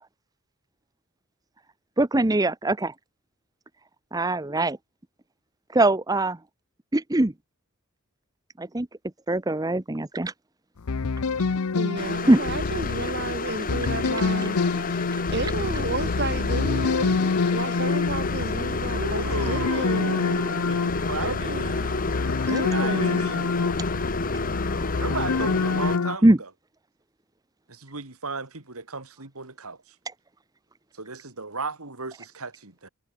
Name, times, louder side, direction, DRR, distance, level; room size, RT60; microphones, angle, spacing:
voice 1, 2.0-2.9 4.1-4.8 5.7-6.4 6.9-7.3 8.6-8.9 9.3-10.3 12.3-12.4 26.2-26.4, right 2 dB, 15° right, 0.7 m, -21 dB
sound 1, 10.8-26.2, left 4 dB, 90° left, 0.7 m, -27 dB
voice 2, 11.8-14.6 15.3-20.4 21.2-21.7 22.5-23.3, right 2 dB, 50° right, 3.4 m, -32 dB
sound 2, 12.0-26.0, left 3 dB, 40° left, 2.1 m, -30 dB
voice 3, 18.8-22.2 22.5-24.1 24.9-26.5 27.7-29.9 30.9-32.9, right 3 dB, 80° right, 3.1 m, -35 dB
head